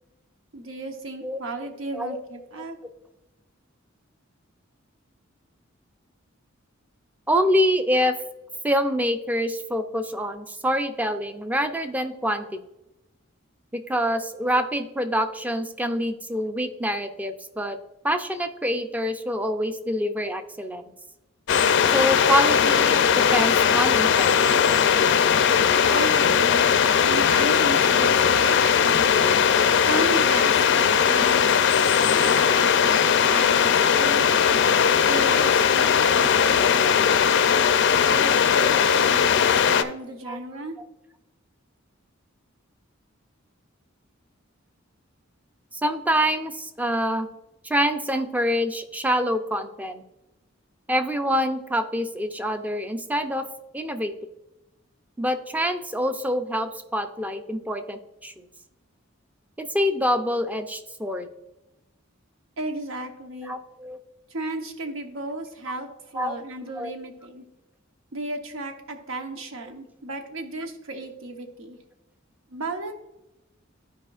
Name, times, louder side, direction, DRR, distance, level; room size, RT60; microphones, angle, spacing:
voice 1, 0.5-2.8 25.9-26.7 27.0-29.1 29.7-31.7 32.1-34.3 34.9-37.2 38.0-40.8 62.6-63.5 64.3-67.4 68.1-71.8 72.5-72.9, right 2 dB, 80° right, 5 dB, 0.9 m, -34 dB
voice 2, 7.3-8.1 8.6-12.6 13.7-17.8 18.0-20.9 21.8-24.5 40.3-40.4 45.7-47.3 47.6-50.0 50.9-53.5 53.7-54.1 55.2-58.5 59.6-61.3 63.4-64.0 66.2-66.4 66.8-66.9, equal, 10° right, 8 dB, 0.5 m, -26 dB
sound 1, 21.5-39.8, left 7 dB, 60° left, 0.4 m, -19 dB
Bowed string instrument, 26.2-30.7, right 4 dB, 45° right, 2.1 m, -40 dB
12.5 x 5.0 x 2.4 m, 0.95 s
head